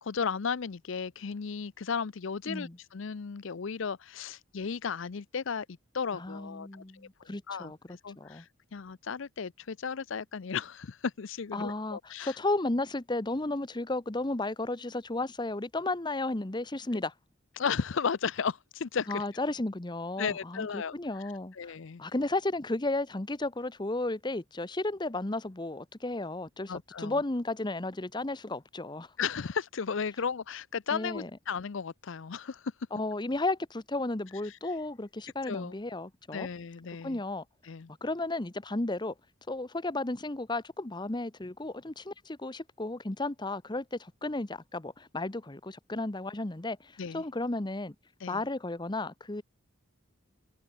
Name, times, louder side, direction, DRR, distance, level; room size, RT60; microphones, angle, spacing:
voice 1, 0.0-5.7 5.9-6.7 7.2-12.4 17.6-19.2 20.2-20.9 21.2-22.0 26.7-27.2 29.2-32.7 34.5-34.6 35.5-35.7 36.3-37.2 37.7-37.9 47.0-47.2 48.2-48.4, left 6 dB, 60° left, 0.5 m, -35 dB
voice 2, 2.5-2.8 6.1-8.4 11.5-17.1 19.1-21.7 22.0-29.1 30.9-31.3 32.9-36.5 37.0-37.4 38.0-39.1 39.5-47.9 48.3-49.4, left 2 dB, 20° left, 0.9 m, -33 dB
head